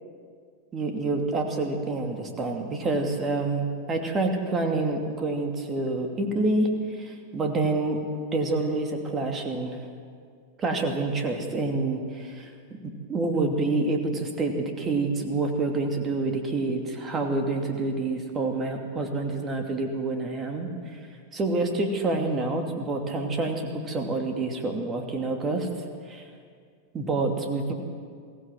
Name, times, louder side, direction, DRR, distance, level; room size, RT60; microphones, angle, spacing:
voice 1, 0.7-6.7 7.0-9.8 10.6-12.5 13.1-20.7 21.3-25.7 26.1-26.2 26.9-27.7, right 2 dB, 25° right, 4 dB, 2.6 m, -27 dB
22.0 x 17.0 x 7.7 m, 2.1 s
figure-of-eight pair, 90°, 0 cm